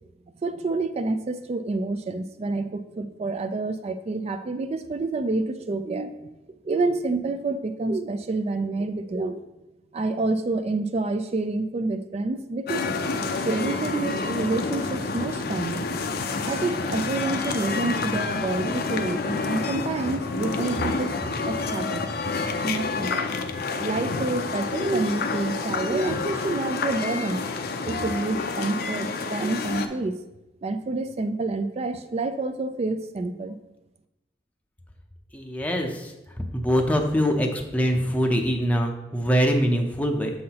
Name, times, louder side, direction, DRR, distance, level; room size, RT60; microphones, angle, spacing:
voice 1, 0.4-6.1 6.6-9.4 9.9-12.9 13.4-15.9 16.5-21.1 21.4-22.1 22.6-23.3 23.7-27.4 27.9-30.2 30.6-33.6, right 3 dB, 35° right, 9 dB, 0.3 m, -28 dB
sound 1, 12.7-29.9, left 4 dB, 60° left, 0.5 m, -29 dB
voice 2, 35.3-36.1 36.5-40.3, equal, 10° left, 2 dB, 0.6 m, -23 dB
7.5 x 5.6 x 2.9 m, 0.96 s
head